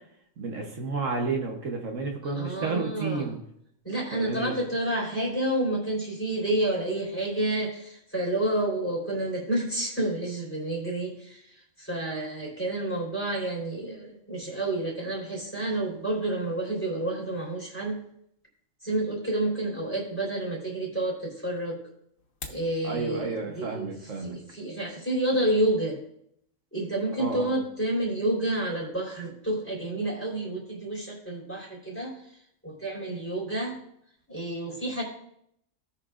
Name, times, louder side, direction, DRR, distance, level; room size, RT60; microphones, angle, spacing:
voice 1, 0.4-3.4 4.1-4.6 22.8-24.4 27.2-27.5, right 4 dB, 70° right, 2 dB, 1.4 m, -31 dB
voice 2, 2.2-3.3 3.8-18.0 18.8-21.8 22.5-26.0 26.7-32.2 32.6-33.8 34.3-35.0, right 1 dB, 10° left, -3 dB, 3.6 m, -29 dB
sound 1, 22.2-22.7, left 4 dB, 85° left, 1.6 m, -41 dB
17.5 x 5.9 x 2.5 m, 0.72 s
omnidirectional pair, 1.4 m